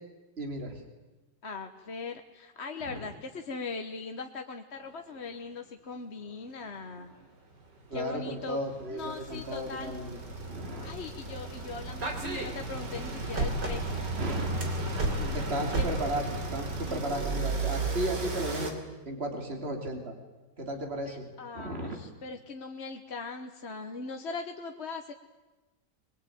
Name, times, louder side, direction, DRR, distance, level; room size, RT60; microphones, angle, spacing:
voice 1, 0.4-0.8 2.9-3.1 7.9-10.2 10.5-10.9 14.2-14.5 15.3-16.2 16.5-18.7 19.0-20.1 20.6-21.2 21.5-22.0, right 1 dB, 35° right, 4 dB, 3.3 m, -34 dB
voice 2, 1.4-7.1 7.9-8.6 8.9-10.0 10.8-14.0 15.0-15.4 15.8-15.9 16.9-17.3 21.0-25.1, left 4 dB, 40° left, 5 dB, 1.3 m, -40 dB
sound 1, 7.0-7.2 7.8-18.7, right 2 dB, 80° right, 3.5 m, -33 dB
22.5 x 22.0 x 9.3 m, 1.1 s
omnidirectional pair, 1.9 m